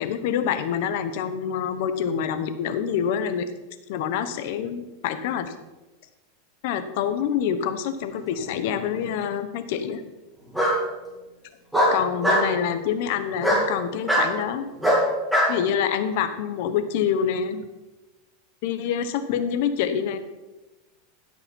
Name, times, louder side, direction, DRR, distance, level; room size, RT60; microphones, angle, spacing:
voice 1, 0.0-3.5 3.9-5.5 6.6-10.0 11.9-14.7 15.5-17.7 18.6-20.2, left 8 dB, 60° left, 10 dB, 1.1 m, -26 dB
Bark, 8.4-9.0 10.5-10.8 11.7-12.5 13.4-13.7 14.1-14.3 14.8-15.5, equal, 5° right, 2.7 m, -20 dB
16.0 x 5.8 x 5.4 m, 1.1 s
supercardioid pair, 150°, 0 cm